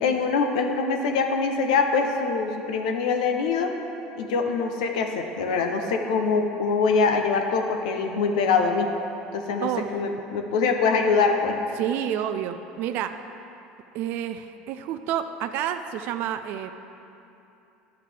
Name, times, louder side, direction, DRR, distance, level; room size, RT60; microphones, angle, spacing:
voice 1, 0.0-3.7 4.2-8.9 9.3-11.6, left 4 dB, 85° left, 4 dB, 0.7 m, -24 dB
voice 2, 9.6-9.9 11.8-13.2 13.9-16.7, right 10 dB, 65° right, 9 dB, 0.4 m, -29 dB
10.5 x 7.9 x 3.3 m, 2.8 s
supercardioid pair, 95°, 4 cm